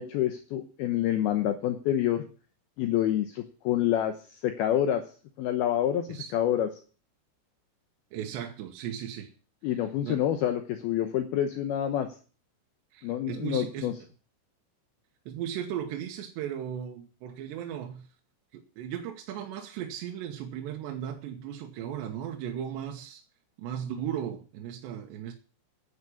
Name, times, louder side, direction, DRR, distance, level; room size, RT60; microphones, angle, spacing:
voice 1, 0.0-2.2 2.8-4.2 4.4-5.0 5.4-6.7 9.6-12.1 13.0-13.9, left 11 dB, 80° left, 2.2 m, -27 dB
voice 2, 8.1-9.3 10.0-10.2 12.9-13.9 15.3-18.1 18.5-23.2 23.6-25.3, right 9 dB, 70° right, 3.0 m, -36 dB
10.0 x 9.6 x 8.5 m
omnidirectional pair, 5.8 m